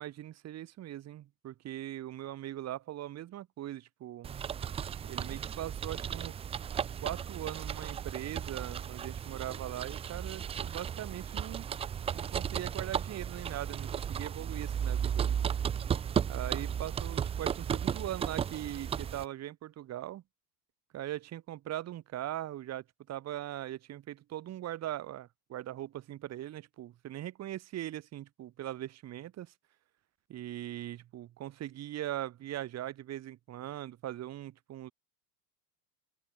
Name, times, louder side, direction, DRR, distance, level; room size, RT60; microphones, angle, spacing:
voice 1, 0.0-4.3 5.0-6.4 7.0-11.6 12.1-15.4 16.3-20.2 20.9-29.5 30.3-34.9, right 13 dB, 35° right, 1.1 m, -40 dB
sound 1, 4.2-19.2, right 8 dB, 15° right, 0.3 m, -35 dB
open air
hypercardioid pair, 95°, 48 cm